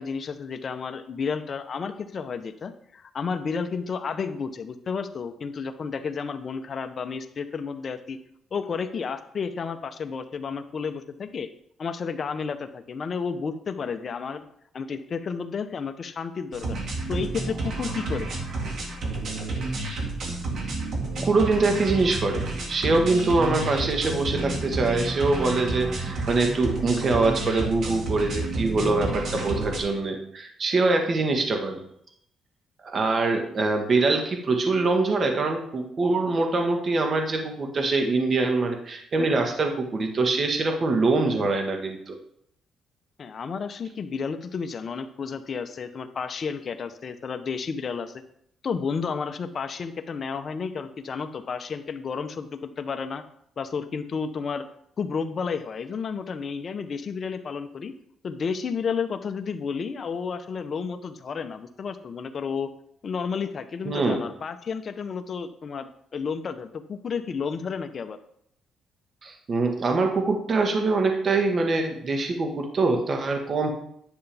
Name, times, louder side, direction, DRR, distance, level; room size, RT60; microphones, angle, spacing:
voice 1, 0.0-8.2 8.5-11.5 11.8-14.5 14.7-16.8 17.1-18.3 43.2-48.2 48.6-53.2 53.6-54.7 55.0-57.9 58.2-62.7 63.0-68.2, left 5 dB, 45° left, 8 dB, 0.8 m, -31 dB
sound 1, 16.5-29.8, right 2 dB, 65° right, 1.9 m, -30 dB
voice 2, 21.2-31.8 32.8-42.2 63.8-64.2 69.2-73.7, right 3 dB, 45° right, 4 dB, 1.4 m, -24 dB
10.5 x 6.9 x 3.4 m, 0.69 s
cardioid pair, 90°, 0 cm